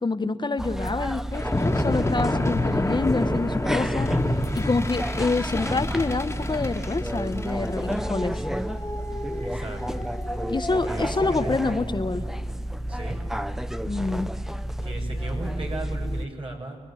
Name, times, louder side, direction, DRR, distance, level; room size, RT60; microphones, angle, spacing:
voice 1, 0.0-4.1 4.5-8.4 10.5-12.2 13.8-14.3, left 3 dB, 40° left, 8 dB, 1.4 m, -27 dB
sound 1, 0.6-16.3, equal, 5° right, 0.9 m, -31 dB
sound 2, 1.3-11.9, left 1 dB, 20° left, 2.5 m, -29 dB
voice 2, 9.4-10.0 10.8-11.9 12.9-13.2 14.8-16.8, right 2 dB, 50° right, 1 dB, 7.4 m, -36 dB
29.0 x 20.5 x 9.3 m, 1.4 s
wide cardioid pair, 75°, 11 cm